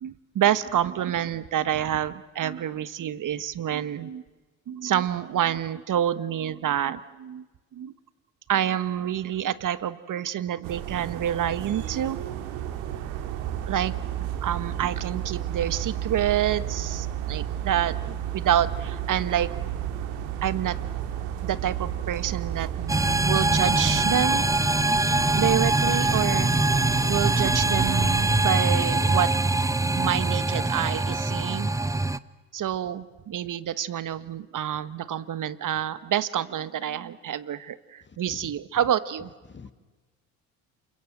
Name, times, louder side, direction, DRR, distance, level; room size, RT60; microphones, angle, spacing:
voice 1, 0.0-4.2 4.7-7.4 7.7-7.9 8.5-12.2 13.7-19.7 20.4-20.8 21.4-22.9 23.2-24.5 25.3-26.5 27.1-29.3 29.9-31.7 32.5-39.3, right 10 dB, 45° right, 15 dB, 1.4 m, -28 dB
sound 1, 10.6-28.5, right 11 dB, 80° right, 2.5 m, -32 dB
sound 2, 22.9-32.2, right 2 dB, 10° right, 0.9 m, -23 dB
voice 2, 38.1-38.5 39.5-39.7, left 5 dB, 25° left, 11 dB, 2.2 m, -45 dB
28.5 x 24.5 x 8.0 m, 1.3 s
hypercardioid pair, 60°, 42 cm